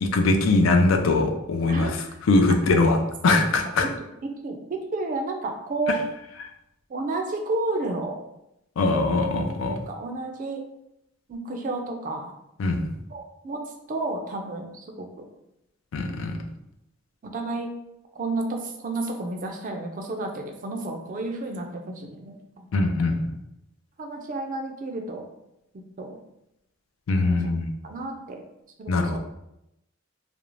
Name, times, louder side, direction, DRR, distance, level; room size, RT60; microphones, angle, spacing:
voice 1, 0.0-3.0 3.2-3.9 8.8-9.7 12.6-12.9 15.9-16.4 22.7-23.3 27.1-27.7 28.9-29.2, left 3 dB, 75° left, 5 dB, 0.4 m, -22 dB
voice 2, 4.2-6.0 6.9-8.2 9.6-10.6 11.3-12.3 13.1-13.6 13.9-15.3 17.2-17.7 18.1-22.7 24.0-25.3 25.7-26.2 27.2-28.4 28.8-29.2, right 2 dB, 40° right, 3 dB, 0.4 m, -31 dB
2.5 x 2.0 x 3.0 m, 0.85 s
head